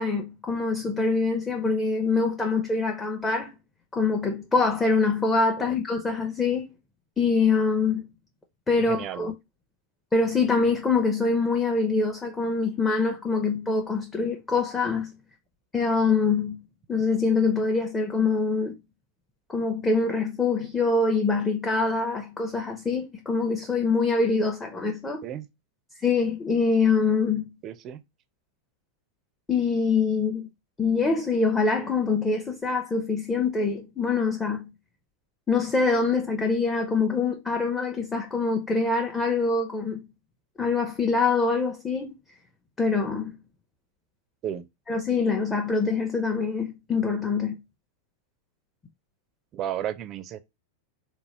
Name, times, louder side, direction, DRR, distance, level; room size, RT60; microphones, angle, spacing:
voice 1, 0.0-3.5 3.9-6.6 7.2-8.0 8.7-9.3 10.1-15.1 15.7-16.6 16.9-18.7 19.5-25.2 26.0-27.5 29.5-30.5 30.8-34.7 35.5-40.0 40.6-42.1 42.8-43.3 44.9-47.6, left 4 dB, 15° left, 0.6 m, -24 dB
voice 2, 8.8-9.3 25.2-25.5 27.6-28.0 44.4-44.7 49.5-50.4, right 10 dB, 35° right, 0.4 m, -33 dB
3.9 x 2.2 x 2.9 m
figure-of-eight pair, 90°, 0 cm